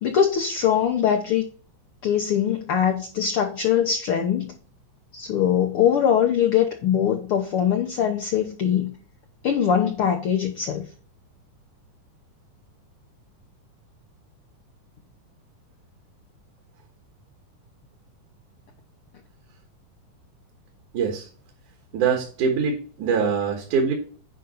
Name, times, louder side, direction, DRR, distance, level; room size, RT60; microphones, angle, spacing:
voice 1, 0.0-1.4 2.0-4.5 5.1-8.9 9.4-10.9, left 8 dB, 90° left, 3 dB, 1.2 m, -22 dB
voice 2, 20.9-21.3 21.9-23.9, right 6 dB, 70° right, 3 dB, 2.8 m, -23 dB
9.3 x 5.2 x 4.1 m, 0.41 s
omnidirectional pair, 3.8 m